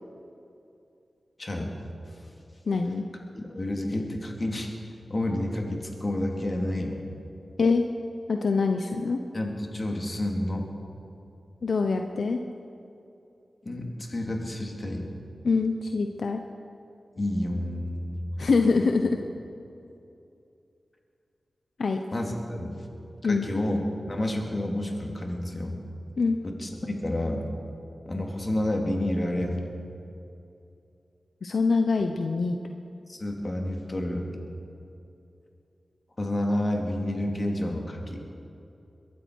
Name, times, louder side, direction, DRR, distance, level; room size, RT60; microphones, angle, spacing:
voice 1, 1.4-1.7 3.3-4.7 5.1-7.0 9.3-10.7 13.6-15.1 17.2-18.2 22.1-22.8 23.3-23.8 24.1-25.7 26.4-27.5 28.1-29.6 33.1-34.3 36.2-38.2, left 1 dB, 40° left, 1 dB, 2.6 m, -29 dB
voice 2, 2.7-3.0 7.6-7.8 8.3-9.2 11.6-12.4 15.4-16.4 18.4-19.1 21.8-22.0 23.2-23.5 26.2-26.4 31.4-32.6, left 4 dB, 75° left, 5 dB, 0.7 m, -24 dB
22.0 x 12.5 x 4.7 m, 2.7 s
cardioid pair, 50°, 0 cm